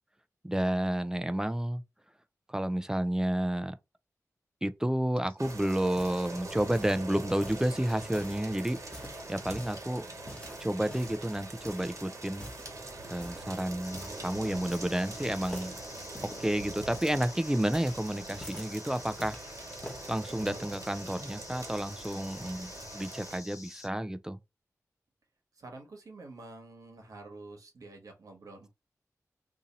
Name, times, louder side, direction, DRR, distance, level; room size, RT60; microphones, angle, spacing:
voice 1, 0.4-1.8 2.5-3.8 4.6-10.1 10.6-12.5 13.1-15.7 16.2-19.4 20.1-24.4, right 1 dB, 10° right, 0.4 m, -31 dB
sound 1, 5.2-7.1 7.4-8.4 8.8-9.8 10.3-11.3 11.6-11.9 12.3-12.7 13.2-13.5 13.9-14.2 14.5-15.1 15.4-18.7 19.2-20.1 20.7-21.3, left 1 dB, 20° left, 1.2 m, -47 dB
sound 2, 5.4-23.4, right 2 dB, 65° right, 1.3 m, -44 dB
sound 3, 13.8-23.9, left 2 dB, 70° left, 0.9 m, -49 dB
voice 2, 25.5-28.7, right 2 dB, 80° right, 1.1 m, -48 dB
2.7 x 2.6 x 3.9 m
wide cardioid pair, 80°, 6 cm